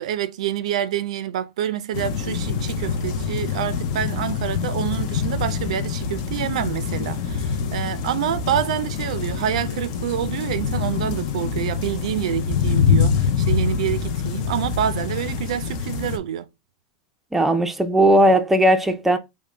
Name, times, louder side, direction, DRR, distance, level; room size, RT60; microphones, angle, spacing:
voice 1, 0.0-16.5, right 10 dB, 75° right, 0.4 m, -27 dB
sound 1, 1.9-16.2, left 6 dB, 55° left, 0.6 m, -25 dB
voice 2, 17.3-19.2, right 1 dB, 5° right, 0.4 m, -17 dB
3.7 x 2.1 x 3.2 m
supercardioid pair, 125°, 3 cm